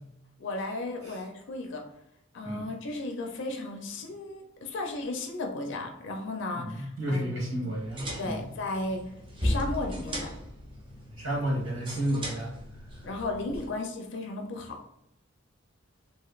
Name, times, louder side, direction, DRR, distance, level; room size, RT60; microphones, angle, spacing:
voice 1, 0.4-1.8 2.3-7.7 8.2-9.0 9.4-10.3 13.0-14.8, left 2 dB, 60° left, 3 dB, 0.4 m, -35 dB
voice 2, 6.6-8.4 11.1-12.5, right 1 dB, 75° right, -5 dB, 1.4 m, -31 dB
sound 1, 7.7-13.7, equal, 25° right, 0.6 m, -36 dB
3.0 x 2.7 x 2.4 m, 0.82 s
head